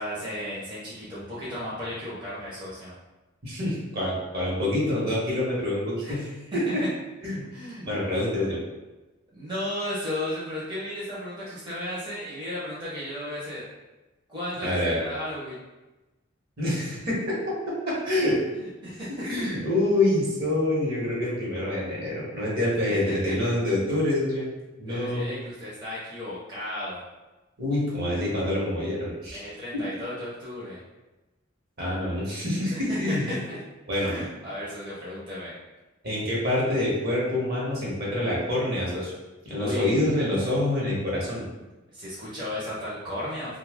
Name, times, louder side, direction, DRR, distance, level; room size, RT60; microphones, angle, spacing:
voice 1, 0.0-2.9 6.0-6.9 7.5-8.0 8.4-8.5 9.3-13.7 14.3-15.6 18.6-19.4 23.1-23.3 24.9-27.0 29.3-30.8 32.7-33.6 33.9-35.5 39.6-40.1 41.9-43.6, left 1 dB, 25° right, -9 dB, 0.7 m, -34 dB
voice 2, 3.4-6.2 6.5-6.8 7.2-7.4 7.8-8.6 14.6-15.0 16.6-18.4 19.2-24.5 24.8-25.3 27.6-29.4 29.7-29.8 31.8-33.2 33.9-34.2 36.0-39.1 39.4-41.4, left 1 dB, 55° right, -5 dB, 1.1 m, -26 dB
2.7 x 2.3 x 3.5 m, 1.1 s
head